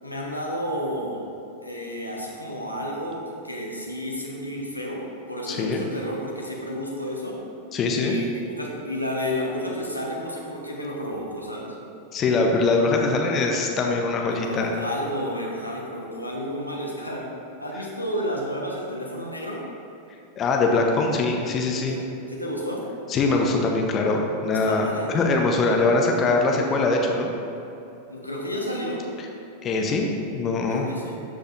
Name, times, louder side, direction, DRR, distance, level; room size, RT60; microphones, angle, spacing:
voice 1, 0.0-1.2 1.6-7.4 7.8-11.7 14.3-17.2 17.6-19.6 21.9-22.0 22.3-22.8 24.6-25.2 28.1-29.0 30.7-31.2, equal, 90° left, -3 dB, 1.1 m, -31 dB
voice 2, 5.5-5.8 7.7-8.1 12.1-14.7 20.4-22.0 23.1-27.3 29.6-30.1 30.3-30.9, left 3 dB, 30° left, 1 dB, 0.8 m, -22 dB
12.5 x 5.1 x 2.6 m, 2.8 s
figure-of-eight pair, 90°, 0 cm